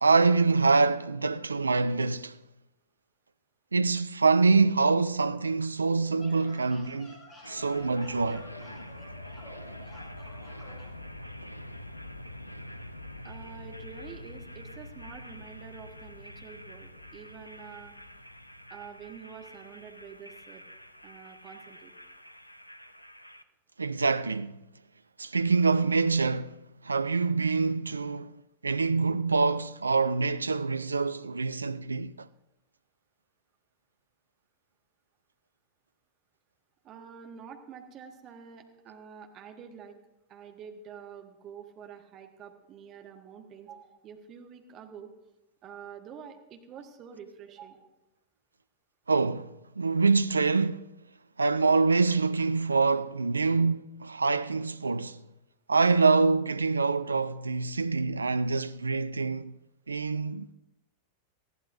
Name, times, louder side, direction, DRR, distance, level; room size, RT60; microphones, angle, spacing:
voice 1, 0.0-2.4 3.7-8.5 23.8-24.6 25.2-26.6 26.8-32.3 49.1-50.9 51.4-55.2 55.7-59.5 59.9-60.5, right 4 dB, 80° right, 0.4 m, -25 dB
sound 1, 6.2-10.9, equal, 20° left, 4.6 m, -51 dB
sound 2, 7.4-23.4, left 1 dB, 85° left, 0.5 m, -45 dB
voice 2, 13.2-17.9 18.7-20.6 21.0-21.9 36.8-39.9 40.3-45.1 45.6-47.9, right 7 dB, 35° right, 1.5 m, -47 dB
20.0 x 14.5 x 2.6 m
figure-of-eight pair, 90°, 0 cm